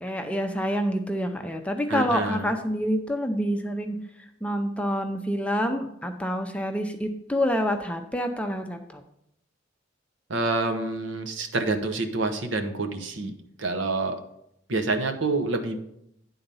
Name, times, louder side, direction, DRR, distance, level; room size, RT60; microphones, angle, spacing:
voice 1, 0.0-4.0 4.4-9.0, equal, 5° left, 5 dB, 0.5 m, -27 dB
voice 2, 1.9-2.5 10.3-13.3 13.6-14.2 14.7-15.8, right 3 dB, 80° right, 7 dB, 0.9 m, -27 dB
10.0 x 3.9 x 5.4 m, 0.77 s
head